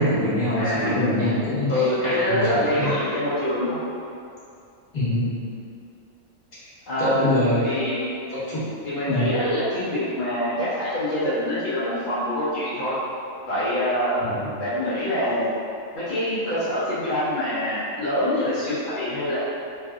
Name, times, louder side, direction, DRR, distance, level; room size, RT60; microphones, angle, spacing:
voice 1, 0.0-2.9 4.9-5.4 7.0-7.6 8.3-8.6 9.1-9.4 14.2-14.5, left 1 dB, 30° left, -12 dB, 1.6 m, -24 dB
voice 2, 0.5-1.0 1.7-3.8 6.9-8.1 8.8-13.0 13.5-14.2 14.6-15.5 15.9-19.4, left 1 dB, 50° left, -12 dB, 0.6 m, -25 dB
3.3 x 2.6 x 3.5 m, 2.5 s
omnidirectional pair, 1.5 m